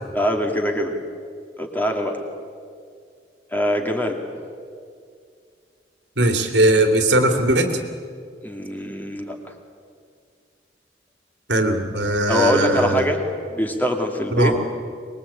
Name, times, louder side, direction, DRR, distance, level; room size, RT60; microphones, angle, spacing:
voice 1, 0.1-0.9 1.6-2.2 3.5-4.1 8.4-9.4 12.3-13.2 13.5-14.5, equal, 10° left, 2 dB, 2.4 m, -23 dB
voice 2, 6.2-7.8 11.5-13.0 14.3-14.6, right 1 dB, 75° right, 5 dB, 2.7 m, -19 dB
24.0 x 21.5 x 8.7 m, 2.2 s
head